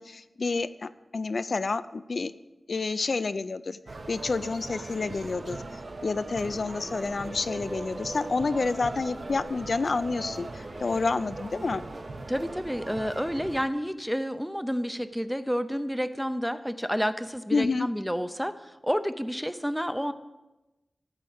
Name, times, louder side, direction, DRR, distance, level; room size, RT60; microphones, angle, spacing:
voice 1, 0.0-2.3 2.7-3.8 4.1-5.6 6.0-11.8 17.5-17.9, left 3 dB, 55° left, 12 dB, 0.4 m, -29 dB
sound 1, 3.9-13.7, right 2 dB, 50° right, 0.9 m, -39 dB
Race car auto racing / Accelerating revving vroom, 8.4-13.6, right 1 dB, 20° right, 1.1 m, -50 dB
voice 2, 12.3-20.1, equal, ahead, 11 dB, 0.5 m, -30 dB
14.0 x 4.7 x 7.8 m, 1.0 s
wide cardioid pair, 115°, 0 cm